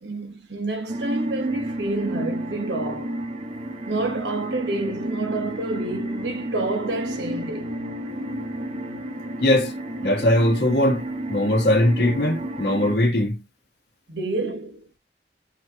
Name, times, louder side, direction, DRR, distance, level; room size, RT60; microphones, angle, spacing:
voice 1, 0.0-3.2 3.9-7.7 14.1-14.9, right 2 dB, 75° right, 1.4 m, -28 dB
sound 1, 0.9-13.0, right 1 dB, 40° right, 1.0 m, -31 dB
voice 2, 9.4-9.7 10.0-11.0 11.3-13.4, left 1 dB, 70° left, 1.6 m, -20 dB
8.3 x 3.1 x 3.7 m
head